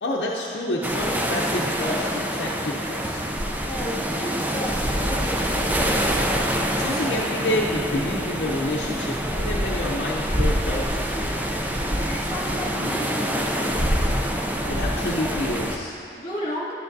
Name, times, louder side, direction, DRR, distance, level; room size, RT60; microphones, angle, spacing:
voice 1, 0.0-3.2 6.8-11.4 14.7-16.0, left 1 dB, 75° left, -3 dB, 0.7 m, -28 dB
sound 1, 0.8-15.8, equal, 10° right, 0.4 m, -25 dB
voice 2, 3.6-5.7 11.8-13.7 16.2-16.7, equal, 40° left, -7 dB, 2.2 m, -33 dB
11.0 x 10.5 x 2.6 m, 2.6 s
head